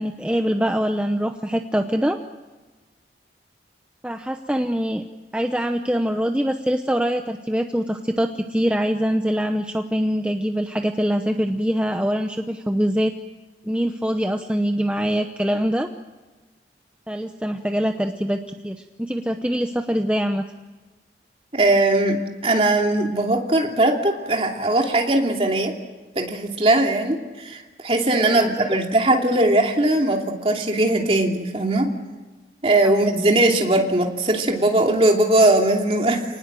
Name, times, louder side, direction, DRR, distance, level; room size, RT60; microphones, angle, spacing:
voice 1, 0.0-2.2 4.0-5.0 5.3-13.1 13.6-15.9 17.1-20.5 28.2-28.7 32.8-32.9, equal, 5° right, 5 dB, 0.8 m, -24 dB
voice 2, 21.5-25.7 26.1-31.9 32.6-36.2, right 2 dB, 30° right, 1 dB, 2.9 m, -20 dB
28.5 x 19.5 x 7.7 m, 1.3 s
head